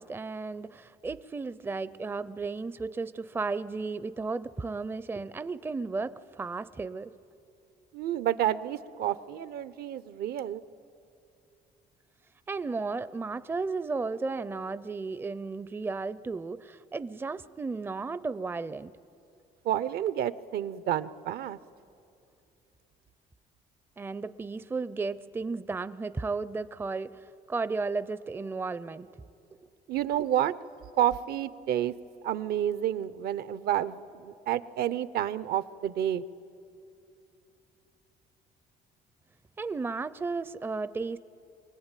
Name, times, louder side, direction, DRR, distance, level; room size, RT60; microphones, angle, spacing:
voice 1, 0.0-7.1 12.5-18.9 24.0-29.1 39.6-41.2, right 4 dB, 15° right, 14 dB, 0.5 m, -34 dB
voice 2, 7.9-10.6 19.6-21.6 29.9-30.5 31.0-31.9 32.2-36.2, right 11 dB, 65° right, 15 dB, 0.7 m, -29 dB
24.0 x 19.0 x 9.1 m, 2.7 s
cardioid pair, 110°, 17 cm